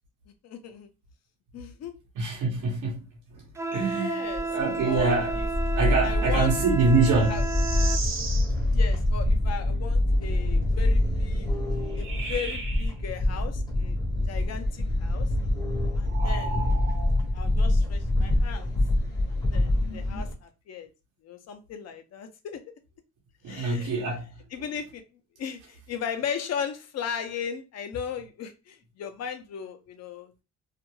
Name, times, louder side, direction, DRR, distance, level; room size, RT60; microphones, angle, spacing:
voice 1, 0.4-0.9 1.5-1.9 3.9-4.5 4.8-5.5 6.0-6.5 6.8-6.9 7.3-7.4 8.7-11.5 11.9-14.0 14.3-15.3 15.9-16.7 17.3-18.7 19.5-20.9 21.2-22.6 23.5-24.0 24.5-25.0 25.4-30.4, left 7 dB, 60° left, 0.6 m, -36 dB
voice 2, 2.2-3.0 3.7-4.2 4.5-5.4 5.8-7.4 23.4-24.2, right 3 dB, 90° right, 0.9 m, -24 dB
Wind instrument woodwind instrument, 3.6-8.0, right 3 dB, 10° right, 0.3 m, -32 dB
sound 1, 4.3-20.3, left 1 dB, 15° left, 0.7 m, -25 dB
sound 2, 7.2-8.5 11.9-12.9 16.1-17.3 19.8-20.2, right 4 dB, 45° right, 0.7 m, -36 dB
2.4 x 2.2 x 3.0 m
cardioid pair, 90°, 30 cm